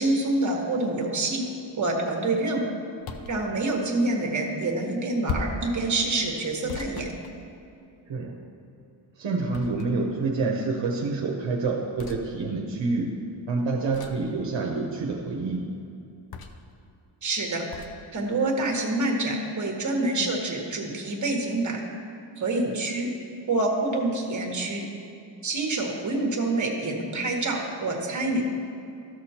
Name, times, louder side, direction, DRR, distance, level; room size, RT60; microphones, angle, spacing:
voice 1, 0.0-1.4 1.8-2.7 3.3-7.1 17.2-17.6 18.1-21.8 22.4-23.1 23.5-24.8 25.4-28.4, right 2 dB, 40° right, 1 dB, 1.4 m, -26 dB
sound 1, 3.0-3.4 5.3-5.7 6.7-7.9 9.5-10.1 12.0-12.2 13.9-14.3 16.3-16.7 17.7-18.0, left 5 dB, 50° left, 0.6 m, -36 dB
voice 2, 8.1-8.4 9.2-15.7, right 3 dB, 70° right, -1 dB, 0.9 m, -28 dB
13.5 x 6.2 x 2.9 m, 2.6 s
wide cardioid pair, 110°, 47 cm